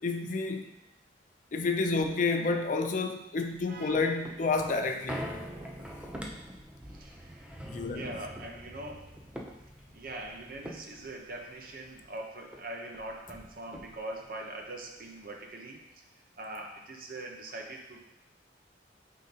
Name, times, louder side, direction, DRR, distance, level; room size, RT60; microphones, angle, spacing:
voice 1, 0.0-0.7 1.5-5.2 7.7-8.1, left 3 dB, 45° left, 5 dB, 0.4 m, -29 dB
sound 1, 3.5-12.2 12.5-12.6 12.9-14.3 14.7-14.8, equal, 5° right, 0.5 m, -44 dB
voice 2, 3.7-4.2 6.8-7.6 7.9-9.2 9.9-18.0, right 2 dB, 50° right, 1 dB, 0.9 m, -42 dB
8.7 x 3.8 x 2.8 m, 0.88 s
head